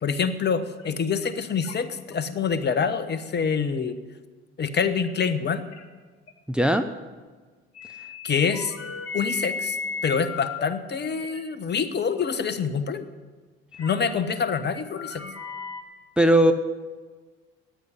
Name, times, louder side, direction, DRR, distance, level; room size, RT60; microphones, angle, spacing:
voice 1, 0.0-4.0 4.6-5.6 8.2-8.7 9.1-9.8 10.0-13.0 13.8-15.2, left 6 dB, 35° left, 12 dB, 1.2 m, -26 dB
sound 1, 0.8-0.9 1.2-1.3 1.6-2.1 2.7-2.9 3.4-3.5 5.0-5.1 5.5-5.8 6.3-6.4 7.7-10.7 11.1-11.4 12.2-12.3 12.5-12.6 13.7-14.2 14.6-15.8, left 4 dB, 50° left, 1.8 m, -35 dB
voice 2, 6.5-6.9 16.2-16.5, right 1 dB, 5° right, 9 dB, 0.8 m, -18 dB
15.0 x 9.7 x 9.4 m, 1.4 s
figure-of-eight pair, 55°, 31 cm